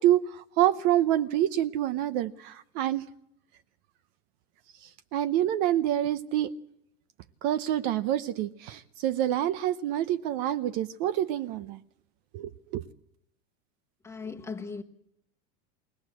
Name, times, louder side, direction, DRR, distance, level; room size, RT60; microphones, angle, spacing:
voice 1, 0.0-3.0 4.8-6.5 7.4-11.8 12.3-12.8, right 12 dB, 40° right, 0.8 m, -27 dB
voice 2, 14.0-14.8, left 4 dB, 5° left, 1.3 m, -37 dB
23.0 x 18.0 x 7.7 m
supercardioid pair, 165°, 37 cm